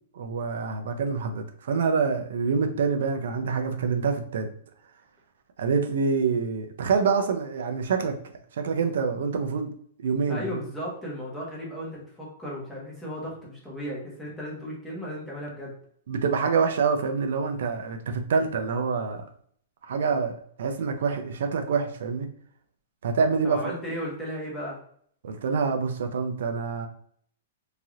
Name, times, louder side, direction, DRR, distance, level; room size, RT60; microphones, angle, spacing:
voice 1, 0.1-4.5 5.6-8.2 8.6-9.7 10.0-10.6 16.1-19.2 19.8-20.3 20.6-22.3 23.0-23.7 25.2-26.9, right 5 dB, 70° right, 6 dB, 0.4 m, -26 dB
voice 2, 10.3-15.8 23.4-24.8, equal, 5° left, -5 dB, 1.0 m, -35 dB
3.1 x 2.7 x 2.4 m, 0.62 s
hypercardioid pair, 160°, 0 cm